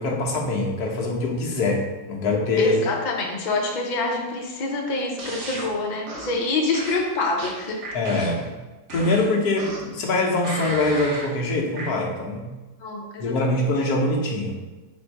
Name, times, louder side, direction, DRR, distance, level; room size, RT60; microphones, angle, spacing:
voice 1, 0.0-1.8 2.1-2.8 7.9-8.5 8.9-12.4 13.2-14.6, left 2 dB, 70° left, -1 dB, 1.3 m, -23 dB
voice 2, 2.6-7.8 12.8-13.3, left 3 dB, 85° left, 0 dB, 0.4 m, -26 dB
sound 1, 5.2-5.7 6.1-6.4 6.7-8.5 8.9-10.0 10.4-11.3 11.8-11.9, right 1 dB, 75° right, 1.5 m, -34 dB
4.2 x 2.6 x 4.5 m, 1.2 s
omnidirectional pair, 1.8 m